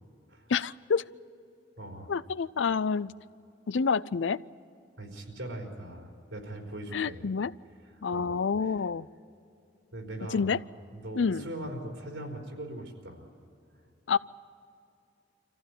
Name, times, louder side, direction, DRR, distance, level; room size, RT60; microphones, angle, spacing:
voice 1, 0.5-1.0 2.1-3.1 3.7-4.4 6.9-7.5 8.0-9.1 10.3-10.6 11.2-11.5 14.1-14.2, left 5 dB, 80° left, 18 dB, 0.5 m, -28 dB
voice 2, 1.8-2.1 5.0-7.3 8.1-8.4 9.9-10.5 10.9-13.3, right 1 dB, 90° right, 1 dB, 4.4 m, -40 dB
26.0 x 15.0 x 9.3 m, 2.6 s
head